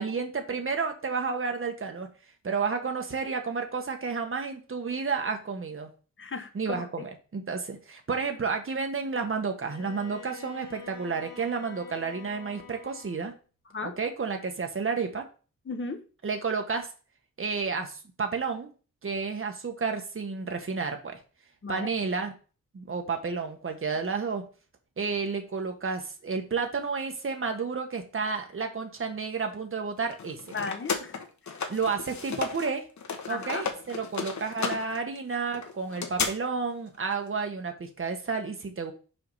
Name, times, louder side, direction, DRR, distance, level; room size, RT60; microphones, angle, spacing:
voice 1, 0.0-2.1 2.4-5.9 6.5-13.3 13.8-15.3 16.2-16.9 17.4-18.7 19.0-21.2 21.7-22.3 22.7-24.4 25.0-30.5 31.7-32.9 33.3-38.9, right 5 dB, 40° right, 1.4 m, -31 dB
voice 2, 6.2-7.1 13.7-13.9 15.6-16.0 21.6-21.9 30.5-31.1 31.5-31.7 33.3-33.7, left 4 dB, 40° left, 1.1 m, -36 dB
Bowed string instrument, 9.6-13.3, left 7 dB, 80° left, 1.5 m, -47 dB
sound 1, 30.1-32.7 33.0-36.3, left 5 dB, 60° left, 1.3 m, -33 dB
5.8 x 4.7 x 5.5 m
wide cardioid pair, 125°, 32 cm